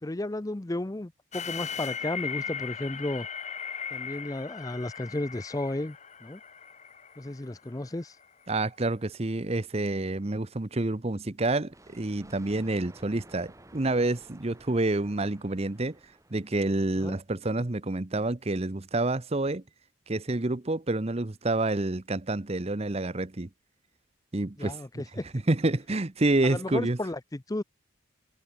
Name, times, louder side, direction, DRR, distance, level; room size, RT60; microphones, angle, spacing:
voice 1, 0.0-3.3 3.9-6.4 7.2-8.2 17.0-17.2 24.6-25.3 26.4-27.6, left 1 dB, 15° left, 0.5 m, -33 dB
sound 1, 1.3-8.2, left 7 dB, 35° left, 2.1 m, -38 dB
voice 2, 8.5-16.0 16.3-19.6 20.1-23.5 24.3-24.8 25.5-27.0, right 2 dB, 30° right, 0.8 m, -28 dB
Thunder, 11.7-17.0, right 1 dB, 15° right, 5.4 m, -54 dB
head